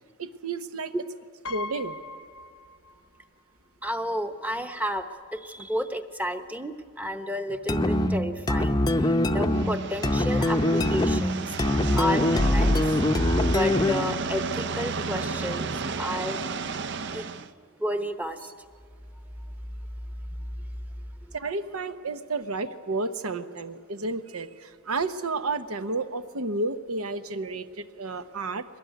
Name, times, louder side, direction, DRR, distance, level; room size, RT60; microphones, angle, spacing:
voice 1, 0.2-0.9 1.5-2.0 21.3-28.6, right 3 dB, 80° right, 10 dB, 0.9 m, -31 dB
Piano, 1.4-3.3 3.6-3.7 4.8-4.9 5.2-5.5, left 2 dB, 70° left, 0.8 m, -40 dB
voice 2, 3.8-12.9 13.5-16.5 16.7-18.5 20.3-20.4, equal, 5° right, 8 dB, 0.9 m, -32 dB
sound 1, 7.7-14.2, left 1 dB, 20° left, 0.6 m, -23 dB
sound 2, 9.4-17.5, right 4 dB, 50° right, 0.6 m, -33 dB
22.0 x 19.5 x 9.3 m, 2.1 s
head